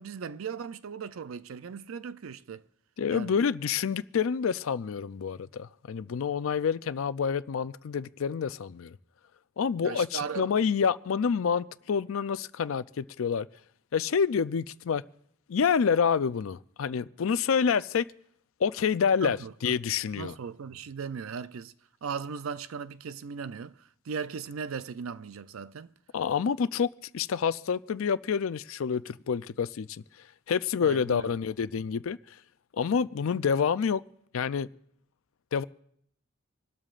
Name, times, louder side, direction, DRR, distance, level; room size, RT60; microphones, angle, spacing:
voice 1, 0.0-2.6 3.1-3.3 9.8-10.7 19.2-19.5 20.2-21.7 22.0-23.7 24.1-25.9 30.8-31.3, right 6 dB, 85° right, 0.5 m, -37 dB
voice 2, 3.0-8.9 9.6-13.5 13.9-15.0 15.5-18.0 18.6-20.3 26.1-26.9 27.1-30.0 30.5-32.2 32.8-34.0 34.3-34.7 35.5-35.6, left 6 dB, 80° left, 0.4 m, -28 dB
26.5 x 12.5 x 2.5 m
head